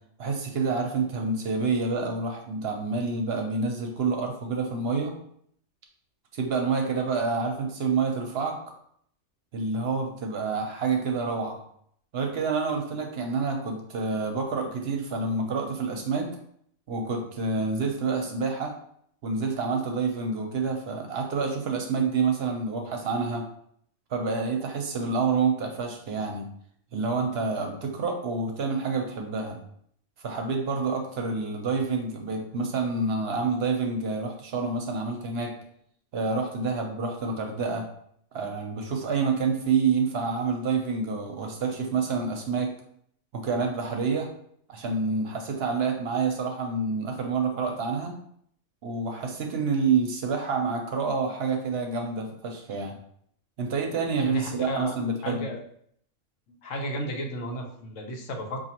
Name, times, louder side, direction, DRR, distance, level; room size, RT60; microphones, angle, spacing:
voice 1, 0.2-5.1 6.3-8.7 9.5-11.6 12.1-16.3 16.9-18.7 19.2-23.5 24.1-26.5 26.9-29.6 30.2-35.5 36.1-37.9 38.3-42.7 43.3-44.3 44.7-48.1 48.8-53.0 53.6-55.5, right 4 dB, 60° right, 2 dB, 0.8 m, -28 dB
voice 2, 54.2-55.0 55.2-55.6 56.5-58.7, equal, 85° left, 2 dB, 1.1 m, -34 dB
4.9 x 2.6 x 2.8 m, 0.66 s
omnidirectional pair, 1.3 m